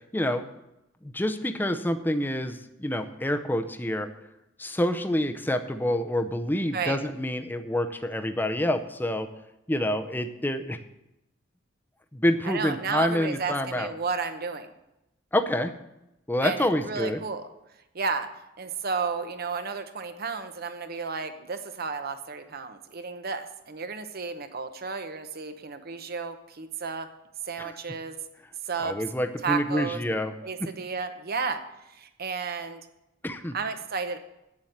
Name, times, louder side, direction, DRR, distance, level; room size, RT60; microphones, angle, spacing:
voice 1, 0.1-0.4 1.0-4.1 4.6-9.3 9.7-10.8 12.1-13.9 15.3-15.7 16.3-17.2 27.6-27.7 28.8-30.3 30.6-30.7 33.2-33.5, left 1 dB, 10° left, 7 dB, 0.6 m, -27 dB
voice 2, 12.4-14.7 16.4-17.5 17.9-18.3 18.6-27.1 27.4-28.2 28.6-29.0 29.4-30.0 30.4-31.6 31.9-32.8 33.5-34.2, right 5 dB, 50° right, 9 dB, 0.9 m, -32 dB
8.8 x 7.3 x 7.9 m, 0.89 s
head